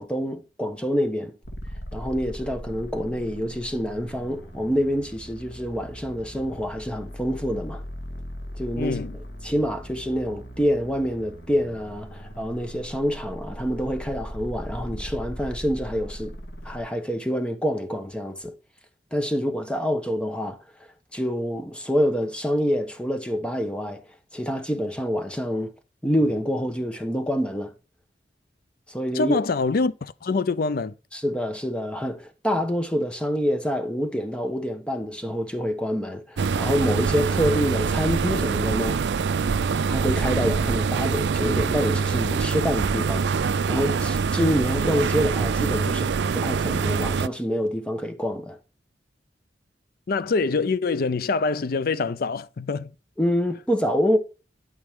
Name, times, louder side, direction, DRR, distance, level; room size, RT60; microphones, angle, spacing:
voice 1, 0.0-1.3 1.9-7.8 8.5-8.9 9.4-16.3 16.6-18.5 19.1-20.6 21.1-24.0 24.3-25.7 26.0-27.7 28.9-29.4 31.1-39.0 39.9-48.6 53.2-54.2, equal, 5° left, 1.1 m, -26 dB
sound 1, 1.4-16.8, equal, 70° left, 2.1 m, -39 dB
voice 2, 8.8-9.1 29.1-30.9 50.1-52.9, left 4 dB, 55° left, 0.5 m, -25 dB
sound 2, 36.4-47.3, right 5 dB, 70° right, 0.4 m, -24 dB
12.0 x 5.4 x 3.6 m
head